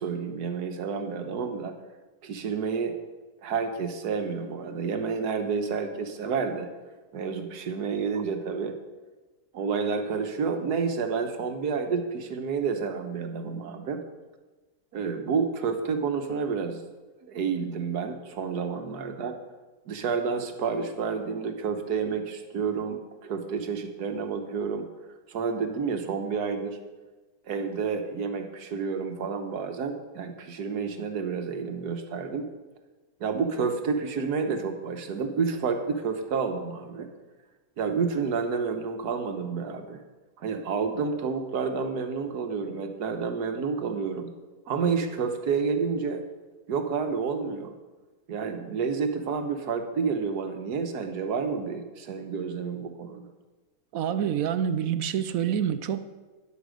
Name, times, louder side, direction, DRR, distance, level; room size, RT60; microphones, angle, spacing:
voice 1, 0.0-1.7 2.2-2.9 3.4-6.7 7.1-8.8 9.5-14.0 14.9-16.8 17.2-19.4 19.9-24.9 25.3-26.8 27.5-32.5 33.2-37.1 37.8-40.0 40.4-44.3 44.7-46.2 46.7-47.7 48.3-53.3, right 5 dB, 85° right, 6 dB, 1.6 m, -29 dB
voice 2, 53.9-56.0, right 8 dB, 70° right, 12 dB, 1.0 m, -27 dB
11.0 x 8.5 x 6.4 m, 1.2 s
omnidirectional pair, 1.7 m